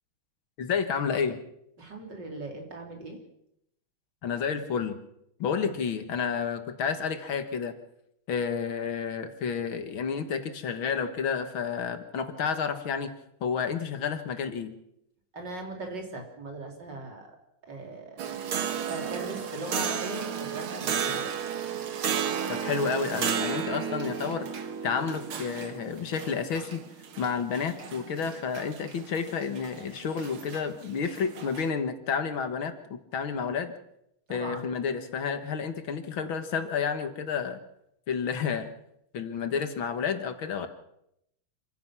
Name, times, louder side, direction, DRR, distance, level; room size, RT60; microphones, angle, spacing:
voice 1, 0.6-1.4 4.2-5.0 5.4-7.7 8.3-13.1 13.4-14.8 22.5-26.8 27.2-33.7 34.3-37.6 38.1-38.7 39.1-40.7, left 6 dB, 70° left, 8 dB, 2.3 m, -30 dB
voice 2, 1.8-3.2 5.6-5.8 15.3-17.3 17.6-18.2 18.9-21.3 34.3-34.7, right 2 dB, 55° right, 2 dB, 4.0 m, -39 dB
sound 1, 18.2-31.7, right 7 dB, 75° right, 2.3 m, -33 dB
27.0 x 15.5 x 6.1 m, 0.80 s
omnidirectional pair, 2.3 m